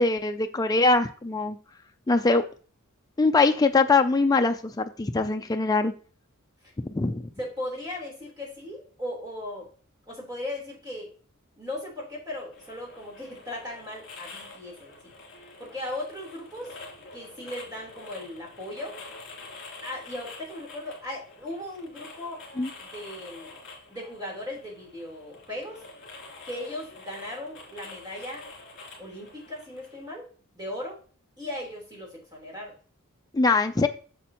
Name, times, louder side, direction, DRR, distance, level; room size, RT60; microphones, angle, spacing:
voice 1, 0.0-1.6 2.1-2.4 3.2-5.9 6.9-7.3 22.6-22.7 33.3-33.9, left 3 dB, 15° left, 6 dB, 0.4 m, -22 dB
voice 2, 7.4-9.7 10.1-11.1 11.6-15.0 15.6-16.7 17.1-19.0 19.8-22.4 22.8-23.6 23.9-25.8 26.4-28.5 29.0-30.3 30.5-31.0 31.4-32.7, left 1 dB, 20° right, -3 dB, 3.7 m, -37 dB
sound 1, 12.5-30.0, left 3 dB, 55° left, 3.3 m, -47 dB
8.4 x 7.1 x 3.0 m, 0.40 s
head